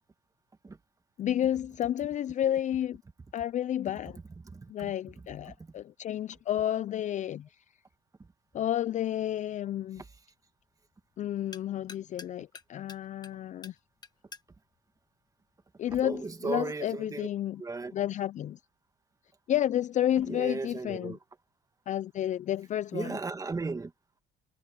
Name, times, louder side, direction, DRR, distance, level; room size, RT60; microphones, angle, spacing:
voice 1, 1.2-3.0 3.3-4.2 4.7-7.6 8.5-10.0 11.2-13.8 15.8-17.6 17.9-18.6 19.5-21.2 21.9-23.2, left 11 dB, 45° left, 0.4 m, -31 dB
voice 2, 4.5-4.9 5.6-5.7 9.9-10.1 15.9-17.3 17.6-17.9 20.2-21.2 22.9-23.9, right 3 dB, 20° right, 1.8 m, -36 dB
sound 1, 8.4-16.1, left 4 dB, 25° left, 1.5 m, -54 dB
cardioid pair, 110°, 17 cm